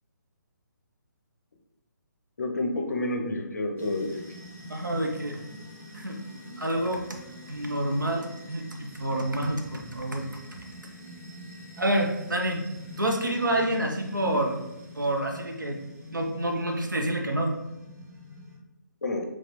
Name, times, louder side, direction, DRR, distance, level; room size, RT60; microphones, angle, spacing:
voice 1, 2.4-4.2 14.3-14.5 19.0-19.2, left 2 dB, 60° left, 3 dB, 0.6 m, -29 dB
sound 1, 3.8-18.6, left 1 dB, 40° right, 1.4 m, -45 dB
voice 2, 4.7-5.4 5.9-6.2 6.6-7.2 7.5-10.3 11.8-12.6 13.0-14.5 15.0-15.8 16.1-17.5, right 1 dB, 80° right, 2 dB, 0.7 m, -28 dB
4.1 x 2.3 x 2.9 m, 0.94 s
figure-of-eight pair, 140°, 10 cm